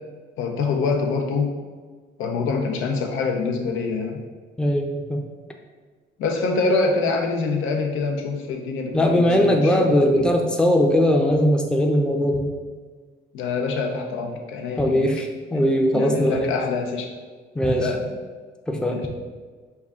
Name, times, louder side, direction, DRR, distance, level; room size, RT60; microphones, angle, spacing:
voice 1, 0.4-1.5 2.2-4.2 6.2-10.4 13.3-15.0 15.5-15.7 15.9-17.1 17.8-18.1 18.9-19.1, left 4 dB, 85° left, 2 dB, 0.7 m, -25 dB
voice 2, 4.6-5.2 8.9-12.5 14.8-16.5 17.5-17.9 18.7-19.0, equal, 5° left, 1 dB, 0.5 m, -20 dB
5.4 x 2.3 x 3.6 m, 1.5 s
cardioid pair, 90°, 20 cm